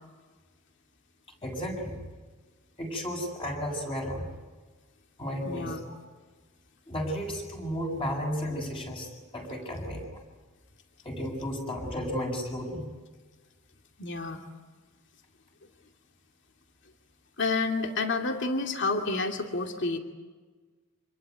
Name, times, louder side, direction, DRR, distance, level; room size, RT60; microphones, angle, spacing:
voice 1, 1.4-2.0 2.8-4.3 5.2-5.9 6.9-10.0 11.0-12.9, equal, 25° left, 0 dB, 7.3 m, -33 dB
voice 2, 5.4-5.8 14.0-14.4 17.4-20.0, left 3 dB, 55° left, 4 dB, 2.5 m, -29 dB
27.0 x 21.5 x 9.7 m, 1.4 s
head